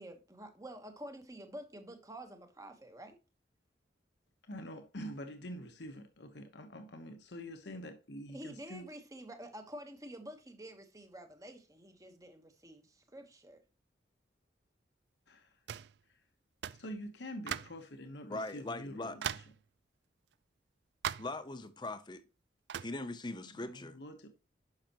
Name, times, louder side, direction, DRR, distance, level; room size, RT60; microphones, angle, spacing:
voice 1, 0.0-3.2 8.3-13.6, right 1 dB, 20° right, 1.2 m, -49 dB
voice 2, 4.4-8.9 15.3-15.6 16.1-16.2 16.8-19.4 23.4-24.3, equal, 75° left, 1.1 m, -46 dB
sound 1, 15.7-16.0 16.6-16.9 17.5-17.8 18.5-18.6 19.2-19.6 21.0-21.4 22.7-23.0, right 9 dB, 70° right, 0.4 m, -39 dB
voice 3, 18.3-19.2 21.2-22.2 22.8-24.0, left 2 dB, 25° left, 0.7 m, -40 dB
10.5 x 5.8 x 3.0 m
head